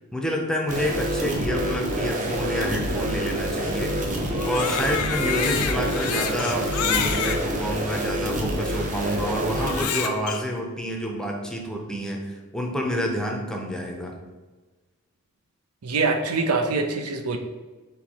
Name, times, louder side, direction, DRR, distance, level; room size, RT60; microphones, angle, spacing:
voice 1, 0.1-3.9 4.4-12.2 12.5-14.1, equal, 5° left, 1 dB, 0.5 m, -28 dB
sound 1, 0.7-9.8, right 1 dB, 35° right, 0.7 m, -27 dB
Crying sobbing, 4.3-7.4 8.1-8.2 9.6-10.4, left 7 dB, 80° left, 0.4 m, -28 dB
voice 2, 15.8-17.4, right 3 dB, 85° right, 5 dB, 0.5 m, -24 dB
4.5 x 2.8 x 4.1 m, 1.3 s
head